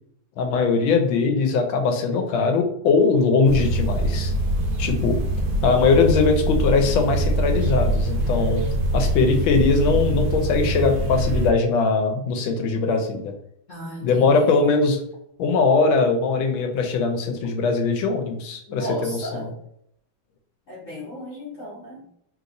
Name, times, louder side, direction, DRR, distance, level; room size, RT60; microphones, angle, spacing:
voice 1, 0.4-4.3 4.8-5.2 5.6-8.6 8.9-13.3 14.0-15.0 15.4-19.5, left 4 dB, 80° left, 4 dB, 1.3 m, -21 dB
sound 1, 3.4-11.5, right 1 dB, 70° right, 1.0 m, -23 dB
voice 2, 13.7-14.8 18.7-19.5 20.7-22.2, equal, 55° left, -7 dB, 0.9 m, -35 dB
3.3 x 2.9 x 2.5 m, 0.72 s
omnidirectional pair, 2.2 m